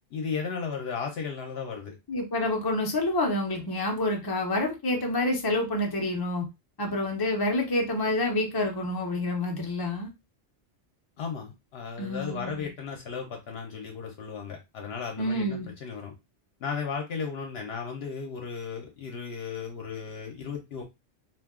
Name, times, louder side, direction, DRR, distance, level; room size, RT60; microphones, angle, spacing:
voice 1, 0.1-1.9 11.2-16.1 16.6-20.8, left 6 dB, 65° left, 2 dB, 0.8 m, -35 dB
voice 2, 2.1-6.5 6.8-10.1 12.0-12.7 15.2-15.7, left 1 dB, 30° left, 1 dB, 0.5 m, -28 dB
2.5 x 2.2 x 3.5 m, 0.23 s
omnidirectional pair, 1.1 m